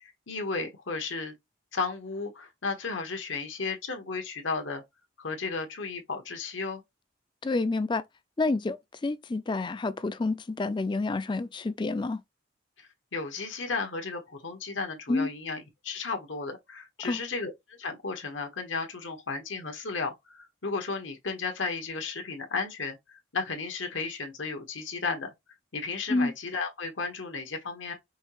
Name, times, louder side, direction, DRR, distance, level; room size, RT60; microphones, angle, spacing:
voice 1, 0.0-1.3 1.7-4.8 5.2-6.8 12.8-25.3 25.7-27.9, left 4 dB, 85° left, 1.3 m, -34 dB
voice 2, 7.4-8.0 8.4-12.2 15.1-15.3 17.0-17.2 26.1-26.3, left 3 dB, 25° left, 0.4 m, -28 dB
5.4 x 2.8 x 3.0 m
head